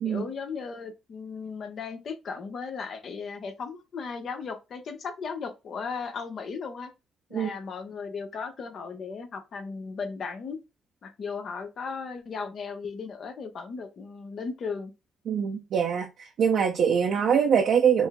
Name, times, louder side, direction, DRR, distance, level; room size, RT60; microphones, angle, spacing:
voice 1, 0.0-6.9 7.3-10.6 11.0-14.9, left 5 dB, 55° left, 1.0 m, -36 dB
voice 2, 15.3-18.1, right 7 dB, 70° right, 0.7 m, -23 dB
5.2 x 2.1 x 3.6 m
cardioid pair, 90°, 0 cm